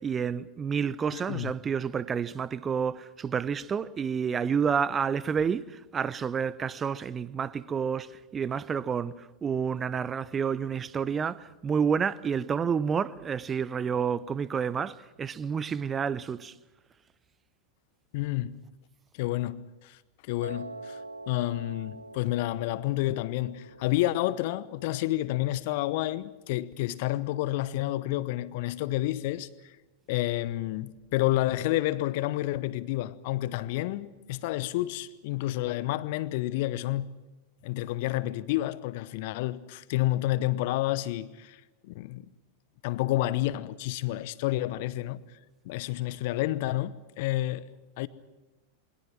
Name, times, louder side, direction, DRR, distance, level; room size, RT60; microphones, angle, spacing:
voice 1, 0.0-16.5, right 6 dB, 20° right, 0.7 m, -29 dB
voice 2, 1.1-1.5 18.1-18.6 19.1-20.0 20.2-21.0 21.3-29.7 30.1-37.1 37.6-42.3 42.8-45.2 45.6-47.7 48.0-48.1, left 16 dB, 50° left, 0.9 m, -30 dB
Piano, 20.4-26.6, right 2 dB, 90° left, 1.0 m, -46 dB
28.0 x 22.0 x 6.0 m
figure-of-eight pair, 90°, 0 cm